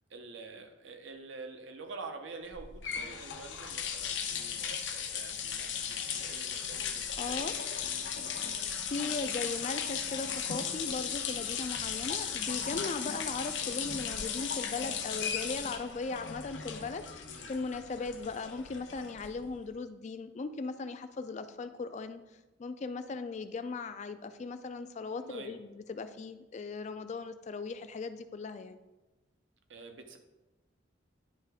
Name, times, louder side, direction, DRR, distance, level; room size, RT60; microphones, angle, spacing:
voice 1, 0.1-7.5 7.7-8.4 17.2-17.5 25.2-25.6 29.7-30.2, right 3 dB, 80° right, 5 dB, 0.7 m, -47 dB
sound 1, 2.5-19.5, left 7 dB, 70° left, 0.7 m, -36 dB
voice 2, 7.2-7.5 8.9-22.2 22.6-28.8, left 4 dB, 40° left, 11 dB, 0.3 m, -38 dB
9.5 x 3.3 x 3.5 m, 1.1 s
head